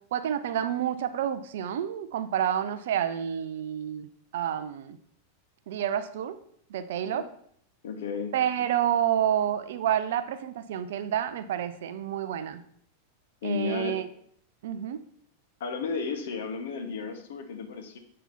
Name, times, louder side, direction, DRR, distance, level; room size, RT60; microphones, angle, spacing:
voice 1, 0.1-5.0 5.7-6.4 6.7-7.2 8.3-12.6 13.4-14.1 14.6-15.0, right 10 dB, 55° right, 11 dB, 0.6 m, -29 dB
voice 2, 7.8-8.3 13.4-14.0 15.6-18.0, left 5 dB, 60° left, 7 dB, 1.1 m, -33 dB
7.4 x 5.5 x 4.3 m, 0.65 s
figure-of-eight pair, 90°, 0 cm